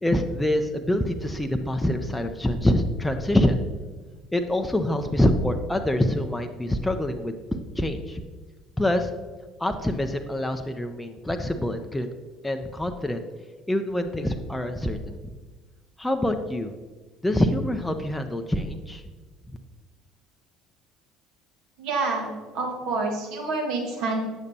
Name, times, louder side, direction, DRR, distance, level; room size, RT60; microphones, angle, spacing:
voice 1, 0.0-3.6 4.3-7.4 7.8-8.2 8.8-9.1 9.6-12.1 12.4-13.2 13.7-15.3 16.0-16.7 17.2-19.0, left 1 dB, 10° left, 6 dB, 0.5 m, -25 dB
voice 2, 21.8-24.3, right 3 dB, 65° right, 0 dB, 1.4 m, -28 dB
8.0 x 6.7 x 2.8 m, 1.4 s
hypercardioid pair, 60°, 0 cm